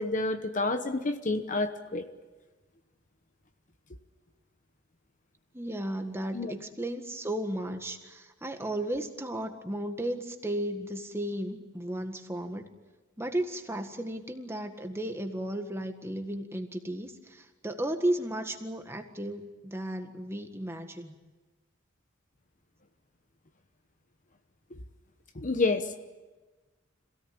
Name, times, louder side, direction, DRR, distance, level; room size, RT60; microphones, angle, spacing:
voice 1, 0.0-2.1 6.3-6.5 24.7-24.8 25.4-26.0, left 3 dB, 40° left, 9 dB, 1.0 m, -29 dB
voice 2, 5.5-12.7 13.2-21.1, right 1 dB, 10° right, 5 dB, 1.7 m, -34 dB
26.5 x 17.5 x 8.9 m, 1.2 s
head